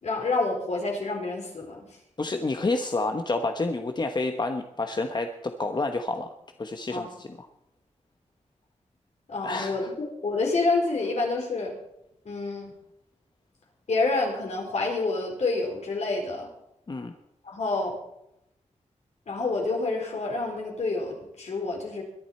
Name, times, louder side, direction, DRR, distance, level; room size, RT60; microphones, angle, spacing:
voice 1, 0.0-2.0 6.9-7.1 9.3-11.7 12.2-12.7 13.9-16.5 17.4-17.9 19.3-22.0, left 3 dB, 65° left, 0 dB, 4.4 m, -28 dB
voice 2, 2.2-6.3 6.6-7.4 9.4-9.9 16.9-17.1, left 3 dB, 35° left, 6 dB, 1.0 m, -29 dB
22.0 x 11.0 x 4.3 m, 0.82 s
wide cardioid pair, 85°, 12 cm